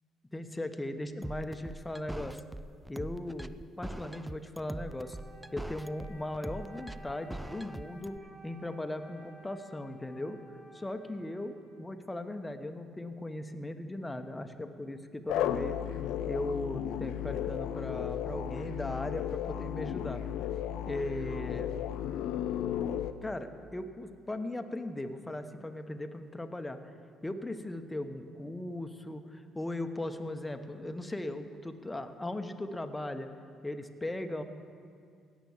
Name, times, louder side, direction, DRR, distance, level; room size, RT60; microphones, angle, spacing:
voice 1, 0.3-2.4 2.9-5.2 5.5-10.4 10.7-15.8 16.3-20.2 20.9-21.7 23.2-26.8 27.2-33.3 33.6-34.4, left 1 dB, 15° left, 7 dB, 1.1 m, -38 dB
sound 1, 1.2-8.2, right 1 dB, 5° right, 0.4 m, -42 dB
Wind instrument woodwind instrument, 4.7-12.3, right 1 dB, 50° right, 2.5 m, -55 dB
sound 2, 15.3-23.1, left 10 dB, 70° left, 0.5 m, -34 dB
17.0 x 6.1 x 7.2 m, 2.2 s
hypercardioid pair, 55°, 0 cm